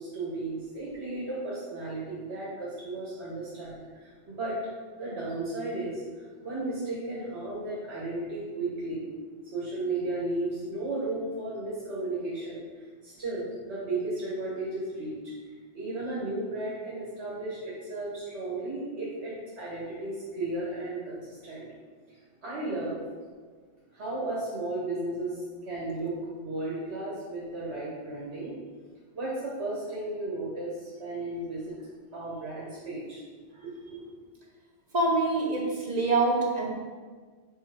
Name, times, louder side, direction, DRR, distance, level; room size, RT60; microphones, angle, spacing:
voice 1, 0.0-4.6 5.0-9.0 9.4-15.2 15.5-21.6 22.1-23.0 23.9-28.5 29.1-31.7 32.1-33.2 33.6-34.1, right 2 dB, 70° right, -7 dB, 1.6 m, -34 dB
voice 2, 34.9-36.7, right 2 dB, 40° right, -2 dB, 1.1 m, -25 dB
7.2 x 4.3 x 3.5 m, 1.5 s
omnidirectional pair, 1.2 m